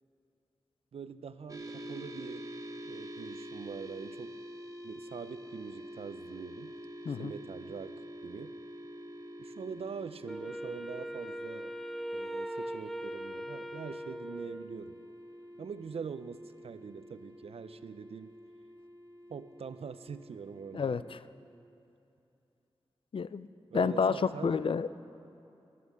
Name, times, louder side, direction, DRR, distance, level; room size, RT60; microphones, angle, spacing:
voice 1, 0.9-2.5 2.8-4.4 4.8-6.7 7.1-8.6 9.4-11.7 12.1-15.0 15.6-18.3 19.3-21.0 23.7-24.6, right 6 dB, 85° right, 13 dB, 0.5 m, -43 dB
sound 1, 1.5-21.2, equal, 35° right, 1.1 m, -47 dB
Wind instrument woodwind instrument, 10.3-14.9, equal, 5° left, 0.4 m, -40 dB
voice 2, 23.1-23.5 23.7-25.0, left 5 dB, 65° left, 15 dB, 0.4 m, -29 dB
14.0 x 9.4 x 8.4 m, 2.7 s
wide cardioid pair, 110°, 10 cm